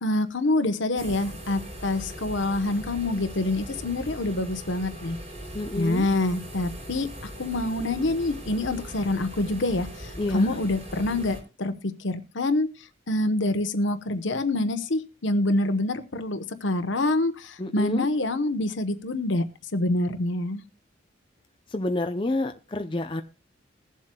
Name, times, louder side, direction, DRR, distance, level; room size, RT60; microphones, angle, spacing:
voice 1, 0.0-5.2 5.8-7.1 7.4-12.7 13.1-19.4 19.7-20.6, left 2 dB, 70° left, 10 dB, 1.0 m, -26 dB
sound 1, 1.0-11.4, equal, 35° right, 3.8 m, -40 dB
voice 2, 5.5-6.1 10.2-10.6 17.6-18.1 21.7-23.2, left 2 dB, 25° left, 6 dB, 0.6 m, -28 dB
21.5 x 7.5 x 2.3 m, 0.30 s
head